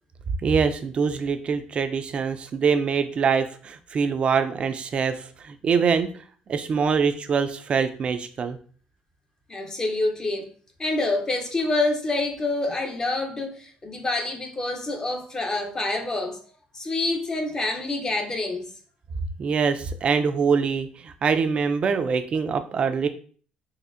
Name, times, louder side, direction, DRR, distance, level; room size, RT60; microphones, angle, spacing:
voice 1, 0.4-6.1 6.5-8.6 19.4-23.1, right 5 dB, 40° right, 0.4 m, -24 dB
voice 2, 9.5-10.5 10.8-16.4 16.7-18.7, left 2 dB, 20° left, 0.6 m, -27 dB
4.2 x 2.6 x 2.5 m
cardioid pair, 125°, 3 cm